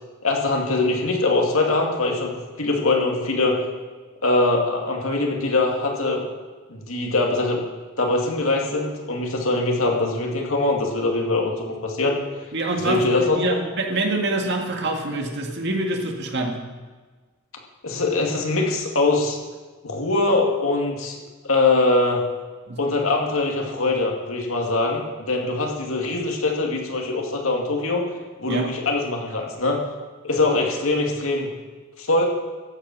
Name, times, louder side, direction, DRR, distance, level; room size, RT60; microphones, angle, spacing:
voice 1, 0.2-3.6 4.2-6.3 6.7-7.6 8.0-12.2 12.8-13.6 17.8-19.4 19.8-22.2 22.8-28.0 28.4-29.8 30.2-31.5 32.0-32.2, left 2 dB, 85° left, 0 dB, 2.4 m, -22 dB
voice 2, 12.5-16.6 22.7-22.8 28.5-28.7, right 2 dB, 55° right, 2 dB, 2.0 m, -25 dB
14.5 x 8.8 x 6.1 m, 1.4 s
head